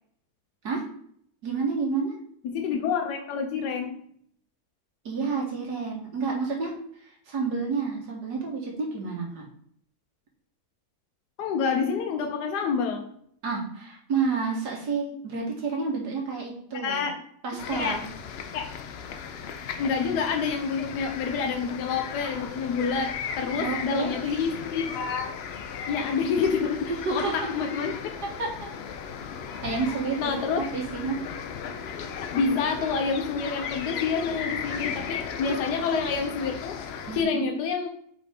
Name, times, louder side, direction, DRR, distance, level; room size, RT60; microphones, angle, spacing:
voice 1, 1.4-2.2 5.1-6.7 7.0-9.5 13.4-17.1 17.4-18.0 23.6-24.4 27.1-27.3 28.4-28.5 29.6-30.3 30.6-31.2 37.1-37.5, right 4 dB, 80° right, 0 dB, 1.9 m, -29 dB
voice 2, 2.4-4.0 11.4-13.1 16.8-17.2 17.7-18.0 18.5-18.7 19.8-25.3 25.9-27.9 30.2-30.6 32.3-36.8 37.1-37.9, left 5 dB, 90° left, 3 dB, 1.2 m, -28 dB
sound 1, 17.6-37.2, left 7 dB, 75° left, 0.5 m, -36 dB
5.2 x 4.3 x 4.3 m, 0.64 s
omnidirectional pair, 1.7 m